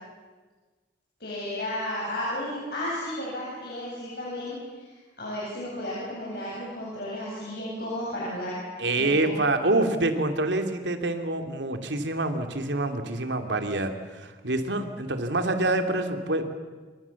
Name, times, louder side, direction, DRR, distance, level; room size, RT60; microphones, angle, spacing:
voice 1, 1.2-4.5 5.2-8.6 9.0-9.3, left 1 dB, 60° left, -5 dB, 7.8 m, -33 dB
voice 2, 8.8-16.5, right 2 dB, 80° right, 6 dB, 2.8 m, -26 dB
28.5 x 25.0 x 7.2 m, 1.4 s
head